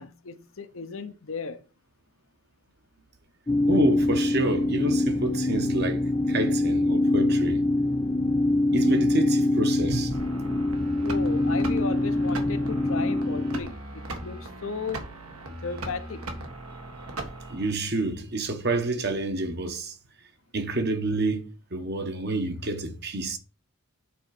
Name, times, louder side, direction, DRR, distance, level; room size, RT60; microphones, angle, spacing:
voice 1, 0.0-1.6 11.0-15.1 15.6-16.3, left 4 dB, 65° left, 0.8 m, -35 dB
sound 1, 3.5-13.6, left 2 dB, 15° left, 0.3 m, -24 dB
voice 2, 3.7-7.6 8.7-10.1 17.5-19.9 20.5-23.4, right 2 dB, 50° right, 1.2 m, -28 dB
sound 2, 10.1-17.7, right 2 dB, 80° right, 1.8 m, -39 dB
8.5 x 4.4 x 4.9 m
head